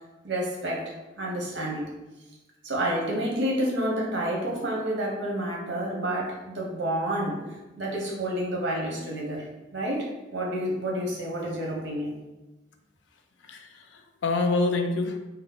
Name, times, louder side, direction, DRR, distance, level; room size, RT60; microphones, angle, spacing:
voice 1, 0.2-1.9 2.6-7.4 7.8-9.4 9.7-12.1, right 1 dB, 85° right, -2 dB, 0.9 m, -29 dB
voice 2, 13.4-15.2, left 3 dB, 85° left, 5 dB, 0.4 m, -27 dB
2.8 x 2.1 x 4.0 m, 1.1 s
head